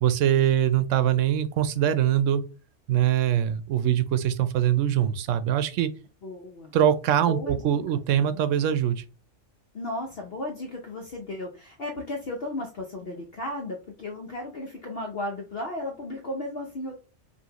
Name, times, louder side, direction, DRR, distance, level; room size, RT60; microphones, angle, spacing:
voice 1, 0.0-2.4 2.9-5.9 6.7-9.0, right 10 dB, 85° right, 0.9 m, -23 dB
voice 2, 6.2-6.7 7.2-8.0 9.7-16.9, left 2 dB, 55° left, 0.9 m, -35 dB
5.6 x 2.6 x 2.9 m
omnidirectional pair, 1.3 m